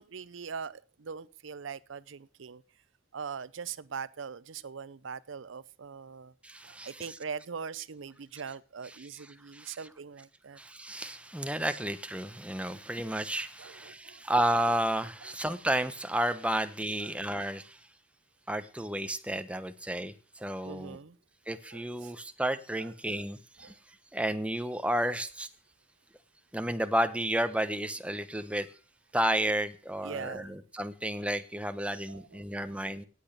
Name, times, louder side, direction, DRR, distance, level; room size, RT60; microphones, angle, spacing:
voice 1, 0.0-2.6 3.1-6.3 6.6-10.6 13.6-14.2 15.2-15.3 17.0-17.5 20.6-21.2 21.7-22.1 22.8-23.2 23.6-23.7 30.0-30.6 31.9-32.8, right 6 dB, 75° right, 0.6 m, -42 dB
voice 2, 6.4-7.2 8.4-8.5 8.8-9.9 10.6-17.8 18.5-21.0 21.5-23.7 24.1-25.5 26.5-28.7 29.1-33.0, right 1 dB, 5° right, 1.0 m, -32 dB
18.0 x 8.0 x 6.6 m
head